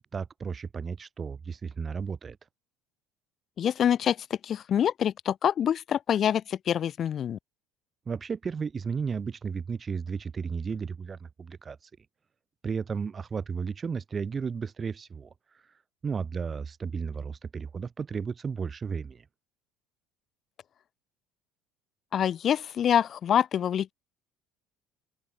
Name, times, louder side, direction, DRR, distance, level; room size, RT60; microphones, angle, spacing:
voice 1, 0.1-2.4 8.1-11.8 12.6-15.3 16.0-19.2, right 5 dB, 30° right, 0.7 m, -33 dB
voice 2, 3.6-4.2 4.4-7.4 22.1-23.9, left 9 dB, 45° left, 0.3 m, -26 dB
open air
hypercardioid pair, 75°, 0 cm